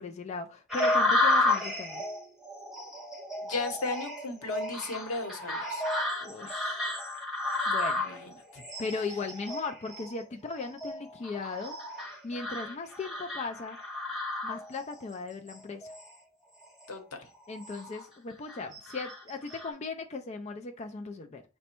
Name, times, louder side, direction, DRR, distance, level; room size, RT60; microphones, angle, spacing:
voice 1, 0.0-2.0 6.2-6.8 7.7-8.1 8.8-11.8 12.2-13.8 14.4-15.9 17.5-21.4, left 3 dB, 30° left, 5 dB, 0.3 m, -37 dB
sound 1, 0.7-15.0 15.5-16.1 16.6-16.8 17.3-18.0 18.5-19.7, left 2 dB, ahead, 0.8 m, -32 dB
voice 2, 3.4-5.8 8.0-8.6 16.9-17.3, left 3 dB, 85° left, 4 dB, 0.9 m, -36 dB
5.1 x 2.2 x 4.3 m, 0.34 s
head